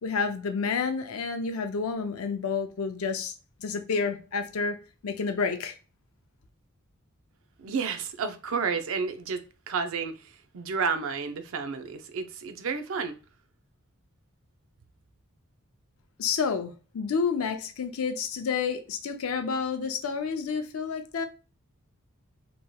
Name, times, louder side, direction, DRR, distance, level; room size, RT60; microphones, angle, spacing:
voice 1, 0.0-3.3 3.6-4.8 5.0-5.8 16.2-21.3, left 5 dB, 70° left, 0.5 m, -29 dB
voice 2, 7.6-13.2, right 5 dB, 65° right, 0.4 m, -31 dB
3.0 x 2.8 x 2.2 m
head